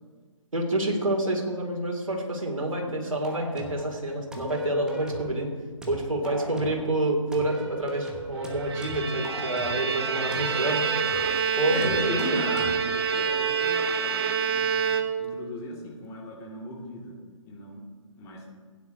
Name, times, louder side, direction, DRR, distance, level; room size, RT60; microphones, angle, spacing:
voice 1, 0.5-5.5 5.9-10.8 11.6-12.4, right 1 dB, 80° right, 1 dB, 2.5 m, -28 dB
voice 2, 2.8-3.2 11.7-14.9 15.2-17.2 17.4-17.8 18.2-18.4, left 2 dB, 20° left, -2 dB, 1.9 m, -37 dB
sound 1, 3.2-3.9 4.3-5.4 5.8-6.9 7.3-9.9 10.3-11.4 11.8-12.8, right 2 dB, 5° right, 1.0 m, -39 dB
Bowed string instrument, 8.5-15.5, right 6 dB, 50° right, 0.9 m, -27 dB
16.0 x 9.6 x 2.7 m, 1.5 s
figure-of-eight pair, 135°, 17 cm